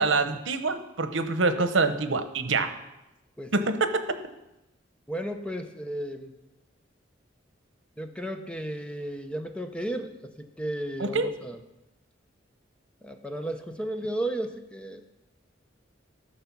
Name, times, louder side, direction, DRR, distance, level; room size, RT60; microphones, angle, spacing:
voice 1, 0.0-2.7 3.5-3.9 11.0-11.3, right 3 dB, 85° right, 9 dB, 0.9 m, -25 dB
voice 2, 3.4-3.7 5.1-6.3 8.0-11.6 13.0-15.0, right 1 dB, 5° left, 6 dB, 0.7 m, -34 dB
14.0 x 6.6 x 6.0 m, 0.93 s
head